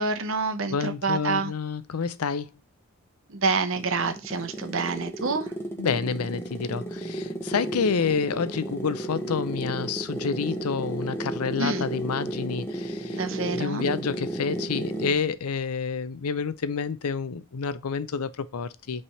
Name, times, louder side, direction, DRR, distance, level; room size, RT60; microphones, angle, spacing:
voice 1, 0.0-1.5 3.3-5.5 11.6-11.9 13.1-13.9, right 4 dB, 65° right, 0.8 m, -27 dB
voice 2, 0.7-2.5 5.8-19.0, left 5 dB, 90° left, 0.5 m, -29 dB
sound 1, 3.5-15.3, right 1 dB, 10° left, 0.9 m, -33 dB
5.4 x 3.4 x 5.6 m
head